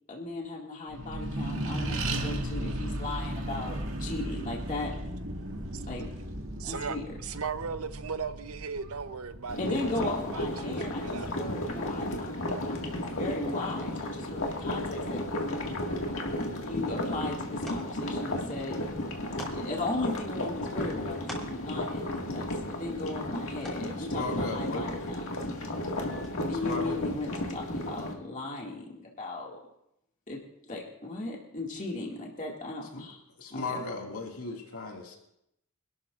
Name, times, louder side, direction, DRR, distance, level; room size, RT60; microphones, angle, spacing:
voice 1, 0.1-4.9 5.9-6.1 6.6-7.0 9.6-15.6 16.6-18.8 19.5-25.1 26.5-29.6 30.3-30.4 30.7-33.2 33.5-33.8, left 2 dB, 35° left, 2.2 m, -37 dB
Accelerating revving vroom, 0.9-11.8, right 1 dB, 65° right, 2.0 m, -36 dB
voice 2, 6.6-7.0 7.2-11.3, right 5 dB, 85° right, 0.8 m, -37 dB
sound 1, 9.5-28.1, left 1 dB, 65° left, 2.0 m, -34 dB
sound 2, 16.5-27.2, equal, ahead, 3.7 m, -51 dB
voice 3, 24.0-24.9 26.7-27.0 32.9-33.0 33.4-35.2, left 2 dB, 85° left, 2.2 m, -36 dB
25.5 x 12.5 x 2.5 m
head